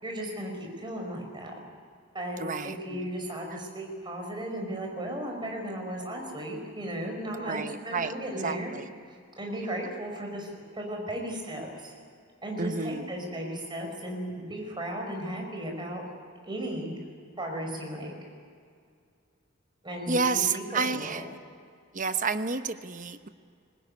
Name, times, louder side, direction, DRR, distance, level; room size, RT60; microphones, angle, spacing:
voice 1, 0.0-1.5 2.1-8.7 9.4-11.9 12.4-16.0 16.4-16.9 17.4-18.1 19.8-21.2, right 1 dB, 25° right, 2 dB, 5.1 m, -35 dB
voice 2, 2.4-3.1 7.4-8.1 8.4-8.8 12.6-13.0 20.1-21.2 21.9-23.3, right 4 dB, 40° right, 10 dB, 1.0 m, -30 dB
21.5 x 20.0 x 9.6 m, 2.2 s
head